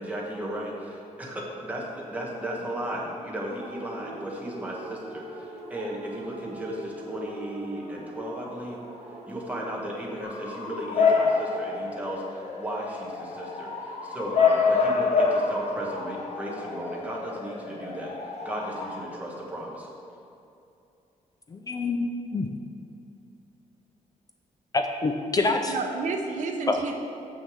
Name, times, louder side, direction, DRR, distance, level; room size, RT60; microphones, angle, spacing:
voice 1, 0.0-8.8 9.2-19.9, equal, 10° right, -3 dB, 1.4 m, -35 dB
sound 1, 3.5-11.3, right 2 dB, 50° right, 1.2 m, -43 dB
Bark / Motor vehicle (road) / Siren, 10.2-19.0, left 4 dB, 55° left, 0.9 m, -27 dB
voice 2, 21.5-22.5 24.7-25.8 26.7-26.8, left 3 dB, 30° left, 5 dB, 0.4 m, -26 dB
voice 3, 25.5-27.0, right 4 dB, 75° right, 4 dB, 0.7 m, -31 dB
6.8 x 6.1 x 6.3 m, 2.7 s
wide cardioid pair, 160°, 13 cm